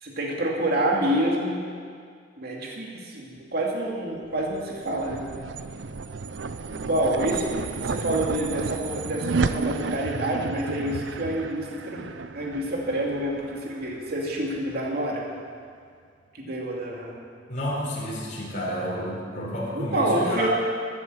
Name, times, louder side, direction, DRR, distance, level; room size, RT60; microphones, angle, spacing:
voice 1, 0.0-1.7 2.4-5.3 6.7-7.4 7.8-12.0 12.3-15.3 16.3-17.2 19.7-20.5, right 1 dB, 60° right, -2 dB, 2.7 m, -27 dB
sound 1, 4.4-14.9, right 4 dB, 85° right, 0.6 m, -32 dB
voice 2, 17.5-20.5, equal, 45° left, -6 dB, 4.5 m, -30 dB
14.5 x 10.5 x 8.0 m, 2.1 s
head